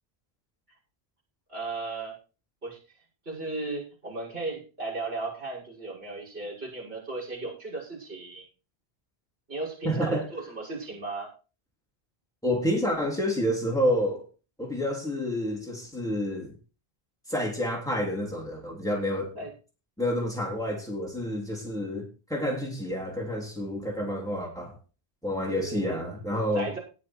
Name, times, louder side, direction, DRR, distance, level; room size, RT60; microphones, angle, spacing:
voice 1, 1.5-2.1 2.6-2.8 3.2-8.4 9.5-11.3 19.4-19.5 25.5-26.2 26.5-26.8, right 3 dB, 75° right, -5 dB, 6.6 m, -35 dB
voice 2, 9.8-10.2 12.4-14.2 14.6-16.5 17.3-19.3 20.0-24.8 25.2-26.7, equal, 5° left, -1 dB, 3.5 m, -29 dB
18.5 x 6.5 x 4.6 m, 0.34 s
omnidirectional pair, 1.0 m